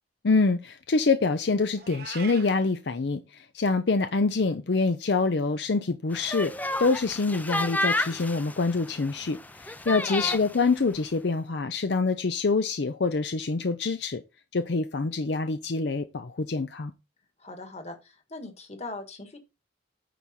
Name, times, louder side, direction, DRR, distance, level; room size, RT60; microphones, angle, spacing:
voice 1, 0.2-6.5 6.8-14.2 14.5-16.9, left 3 dB, 65° left, 0.6 m, -26 dB
Meow, 1.8-2.5, right 6 dB, 55° right, 1.2 m, -41 dB
sound 1, 6.1-10.6, left 1 dB, 10° left, 0.4 m, -31 dB
voice 2, 9.9-10.4 17.4-19.4, left 2 dB, 35° left, 1.5 m, -40 dB
9.3 x 4.7 x 4.3 m
head